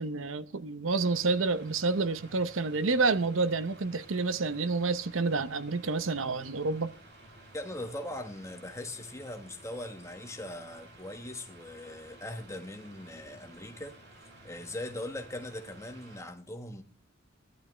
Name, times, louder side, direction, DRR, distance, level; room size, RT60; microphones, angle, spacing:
voice 1, 0.0-6.9, right 3 dB, 85° right, 0.8 m, -29 dB
Mechanical fan, 0.9-16.2, right 1 dB, 60° right, 3.1 m, -53 dB
voice 2, 7.5-14.0 14.4-16.8, left 1 dB, 15° left, 1.5 m, -40 dB
18.0 x 11.5 x 3.3 m
head